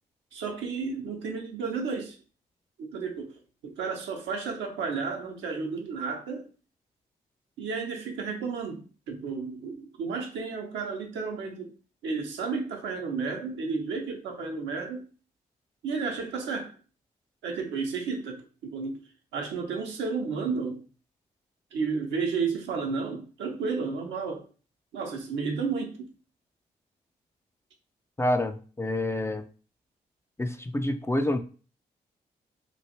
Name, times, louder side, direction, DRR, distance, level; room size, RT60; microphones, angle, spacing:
voice 1, 0.3-2.2 2.8-6.4 7.6-11.7 12.0-15.1 15.8-16.7 17.4-19.0 19.3-20.8 21.7-24.4 24.9-26.1, right 5 dB, 75° right, 1 dB, 0.8 m, -32 dB
voice 2, 28.2-29.4 30.4-31.4, left 1 dB, 15° left, 7 dB, 0.4 m, -27 dB
3.0 x 2.5 x 2.8 m, 0.37 s
hypercardioid pair, 40°, 19 cm